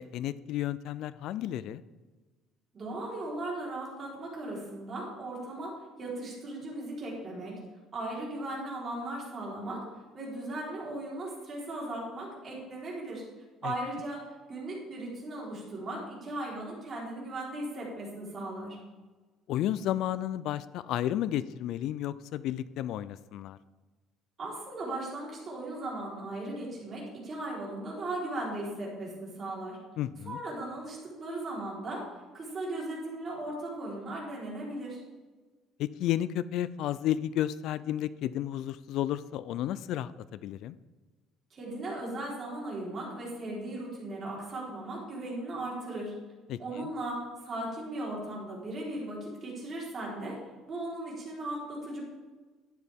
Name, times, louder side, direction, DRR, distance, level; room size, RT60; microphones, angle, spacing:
voice 1, 0.0-1.8 13.6-13.7 19.5-23.6 30.0-30.4 35.8-40.8 46.5-46.9, left 12 dB, 65° left, 16 dB, 0.3 m, -32 dB
voice 2, 2.7-7.6 7.9-9.8 10.1-13.2 13.6-18.8 24.4-29.8 30.3-32.1 32.3-35.0 41.5-46.1 46.6-52.0, right 1 dB, 30° right, -4 dB, 3.9 m, -37 dB
12.0 x 9.7 x 3.6 m, 1.3 s
cardioid pair, 145°, 0 cm